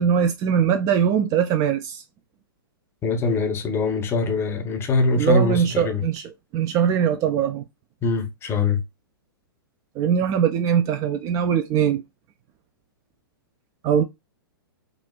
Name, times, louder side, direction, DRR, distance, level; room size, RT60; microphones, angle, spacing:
voice 1, 0.0-2.0 5.2-7.6 10.0-12.0 13.8-14.0, right 8 dB, 25° right, 0.3 m, -21 dB
voice 2, 3.0-6.0 8.0-8.8, left 3 dB, 20° left, 0.7 m, -23 dB
3.8 x 2.3 x 2.2 m
figure-of-eight pair, 115°, 12 cm